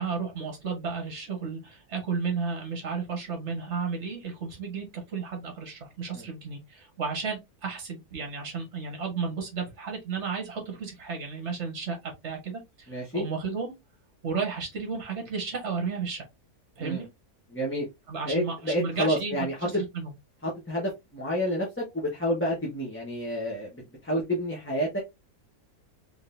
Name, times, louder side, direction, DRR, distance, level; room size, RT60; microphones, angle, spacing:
voice 1, 0.0-13.7 14.2-16.2 16.8-17.1 18.1-20.1, right 5 dB, 50° right, 1.6 m, -33 dB
voice 2, 12.9-13.3 16.8-17.0 17.5-17.9 18.2-19.5 20.4-25.0, equal, 10° left, 0.9 m, -29 dB
3.8 x 3.5 x 2.5 m
omnidirectional pair, 1.6 m